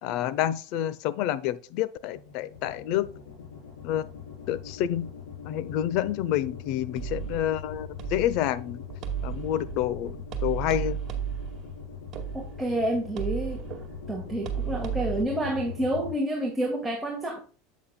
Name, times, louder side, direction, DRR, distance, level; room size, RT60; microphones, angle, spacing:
voice 1, 0.0-3.1 3.8-4.0 4.5-5.1 5.5-8.8 9.2-10.2 10.4-11.0, left 12 dB, 60° left, 0.8 m, -28 dB
sound 1, 2.1-16.1, left 7 dB, 85° left, 4.1 m, -42 dB
sound 2, 7.0-15.2, right 10 dB, 40° right, 1.9 m, -35 dB
voice 2, 12.3-13.7 14.1-17.4, right 1 dB, 10° right, 2.0 m, -29 dB
8.3 x 7.9 x 2.3 m
supercardioid pair, 105°, 0 cm